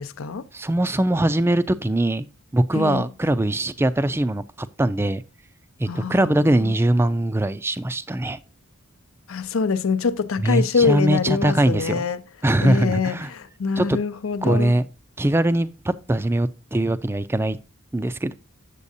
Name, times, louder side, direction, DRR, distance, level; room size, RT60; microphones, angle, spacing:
voice 1, 0.0-0.4 2.7-3.0 5.9-6.3 6.6-6.7 9.3-12.2 12.6-14.7, left 5 dB, 75° left, 0.6 m, -24 dB
voice 2, 0.5-2.3 2.5-5.2 5.8-8.4 10.4-12.1 12.4-13.3 13.8-14.0 14.4-14.9 15.2-17.6 17.9-18.3, right 1 dB, 10° right, 0.3 m, -21 dB
8.3 x 7.3 x 2.6 m
head